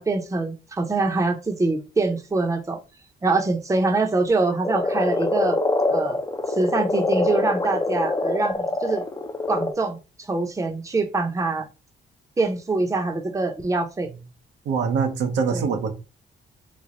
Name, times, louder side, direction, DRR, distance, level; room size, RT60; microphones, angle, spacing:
voice 1, 0.0-2.8 3.2-5.6 5.9-6.2 6.6-9.0 9.5-11.7 12.4-14.1 15.5-15.6, right 3 dB, 15° right, 0.7 m, -24 dB
Frog, 4.6-9.7, left 2 dB, 20° left, 0.6 m, -24 dB
voice 2, 14.6-15.9, right 6 dB, 80° right, 0.8 m, -23 dB
3.2 x 2.2 x 3.8 m
cardioid pair, 100°, 18 cm